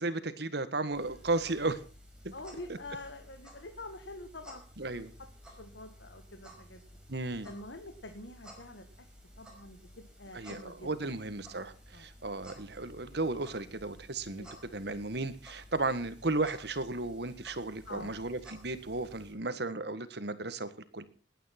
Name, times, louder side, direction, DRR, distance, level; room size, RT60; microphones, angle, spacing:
voice 1, 0.0-1.8 2.7-2.8 4.8-5.1 7.1-7.5 10.3-14.4 14.7-21.0, right 2 dB, 65° right, 12 dB, 1.6 m, -34 dB
sound 1, 0.9-19.3, equal, 5° right, 5.7 m, -54 dB
voice 2, 2.3-5.1 5.4-6.9 7.4-8.9 9.4-11.1 11.9-12.1 14.3-14.7 17.9-18.2, left 2 dB, 85° left, 6 dB, 1.8 m, -46 dB
19.0 x 9.4 x 6.0 m, 0.38 s
head